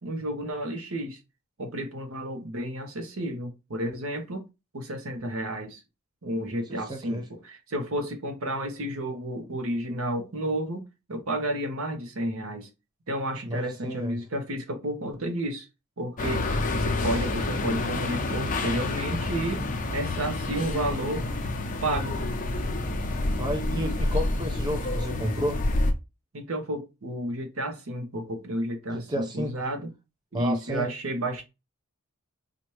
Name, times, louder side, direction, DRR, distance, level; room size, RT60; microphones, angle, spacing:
voice 1, 0.0-1.2 1.6-4.4 4.7-5.8 6.2-12.7 13.1-15.7 16.0-19.6 19.9-21.3 21.8-22.2 26.3-29.9 30.3-31.4, right 1 dB, 65° right, 0.9 m, -31 dB
voice 2, 6.7-7.3 13.4-14.2 23.4-25.6 28.9-29.5 30.3-30.9, equal, 20° right, 0.5 m, -31 dB
sound 1, 16.2-25.9, left 2 dB, 35° left, 0.6 m, -28 dB
4.3 x 2.5 x 3.1 m
head